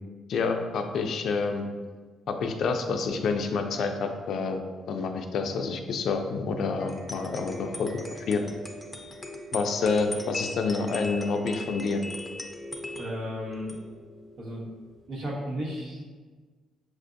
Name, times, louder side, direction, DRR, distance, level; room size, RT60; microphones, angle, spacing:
voice 1, 0.3-1.6 2.3-4.6 4.9-8.5 9.5-12.0, left 4 dB, 70° left, 5 dB, 0.4 m, -28 dB
sound 1, 6.8-15.1, left 1 dB, 15° left, 0.5 m, -40 dB
voice 2, 13.0-13.8 14.4-14.6 15.1-16.0, equal, 75° right, -4 dB, 1.1 m, -34 dB
6.0 x 2.5 x 2.5 m, 1.4 s
cardioid pair, 90°, 0 cm